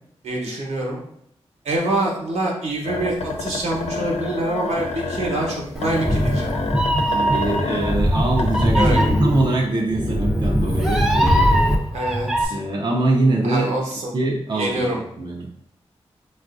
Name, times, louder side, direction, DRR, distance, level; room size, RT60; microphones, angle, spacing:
voice 1, 0.2-1.0 1.6-6.7 8.7-9.1 11.9-12.5 13.4-14.1 14.5-15.0, right 1 dB, 75° right, -2 dB, 0.9 m, -25 dB
sound 1, 2.9-9.1 9.6-9.7, left 4 dB, 70° left, 0.4 m, -29 dB
Meow, 5.8-12.5, equal, 5° right, 0.6 m, -20 dB
voice 2, 7.0-11.7 12.5-13.8 14.1-15.5, right 2 dB, 40° right, -1 dB, 0.6 m, -23 dB
3.7 x 2.4 x 2.4 m, 0.73 s
cardioid pair, 50°, 11 cm